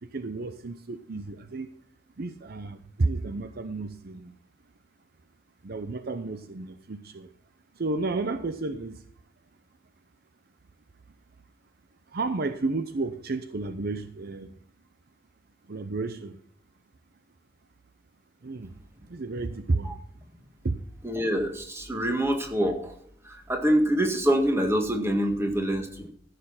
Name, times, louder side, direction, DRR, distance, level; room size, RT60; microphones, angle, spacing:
voice 1, 0.0-1.7 2.2-4.3 5.6-7.3 7.8-9.0 12.1-14.5 15.7-16.4 18.4-18.8 19.1-19.9 20.6-20.8, right 3 dB, 50° right, 10 dB, 0.7 m, -31 dB
voice 2, 21.0-22.9 23.5-26.1, equal, 15° right, 4 dB, 1.8 m, -25 dB
14.5 x 6.7 x 5.6 m, 0.62 s
head